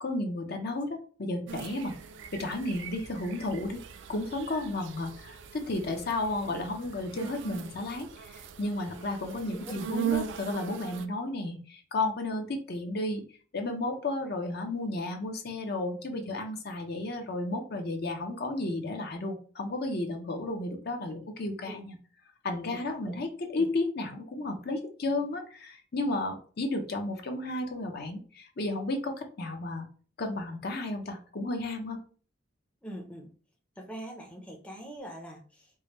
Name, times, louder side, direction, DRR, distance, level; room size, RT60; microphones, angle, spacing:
voice 1, 0.0-2.0 2.3-3.8 4.1-13.2 13.5-22.0 22.4-29.9 30.2-32.0, left 2 dB, 50° left, 4 dB, 0.7 m, -33 dB
sound 1, 1.5-11.1, right 8 dB, 60° right, 0.4 m, -39 dB
voice 2, 32.8-33.3 33.8-35.7, equal, 5° left, 0 dB, 0.6 m, -43 dB
4.7 x 2.1 x 3.0 m, 0.40 s
head